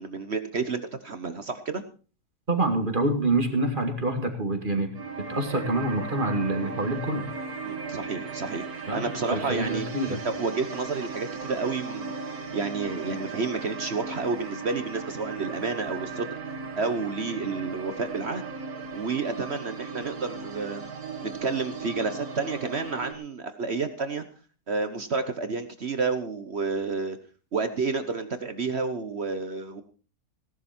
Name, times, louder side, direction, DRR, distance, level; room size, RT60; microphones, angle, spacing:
voice 1, 0.0-1.8 7.6-8.7 8.9-12.1 12.5-16.3 16.8-18.4 18.9-20.8 21.2-24.3 24.7-27.2 27.5-29.8, right 4 dB, 50° right, 10 dB, 1.2 m, -30 dB
voice 2, 2.5-4.9 5.3-7.3 8.9-10.2, right 2 dB, 35° right, 5 dB, 2.4 m, -26 dB
sound 1, 4.9-23.1, right 4 dB, 75° right, 2.1 m, -37 dB
17.0 x 11.5 x 4.4 m, 0.36 s
omnidirectional pair, 1.6 m